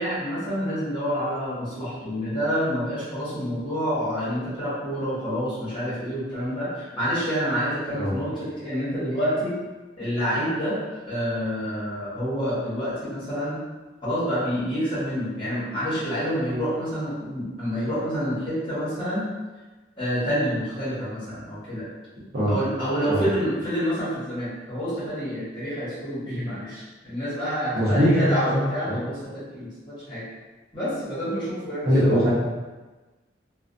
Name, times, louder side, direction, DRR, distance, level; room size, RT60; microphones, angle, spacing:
voice 1, 0.0-9.5 10.0-10.8 11.0-13.6 14.0-19.3 20.0-21.8 22.4-30.2 30.7-32.2, equal, 25° left, -11 dB, 1.1 m, -28 dB
voice 2, 27.7-28.6 28.8-29.0 31.8-32.3, equal, 55° right, -8 dB, 0.8 m, -21 dB
2.4 x 2.1 x 2.5 m, 1.2 s
head